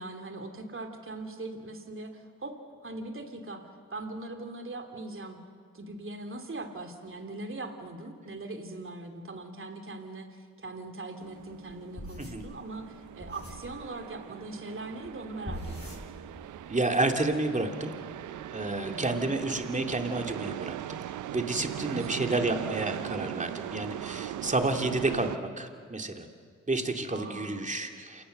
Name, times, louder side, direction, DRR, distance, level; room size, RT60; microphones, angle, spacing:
voice 1, 0.0-2.5 2.8-5.4 5.7-16.0 18.9-19.3 21.8-22.3 27.1-27.7, right 2 dB, 45° right, 5 dB, 2.9 m, -41 dB
sound 1, 11.2-25.4, right 12 dB, 85° right, 0.6 m, -40 dB
sound 2, 12.0-13.8 15.0-15.2 15.4-16.5 16.8-17.3, equal, 20° left, 7.6 m, -42 dB
voice 2, 16.7-17.9 18.5-21.0 21.3-26.3 26.7-28.2, right 2 dB, 25° right, 5 dB, 2.5 m, -30 dB
28.0 x 17.5 x 6.6 m, 2.1 s
cardioid pair, 55°, 30 cm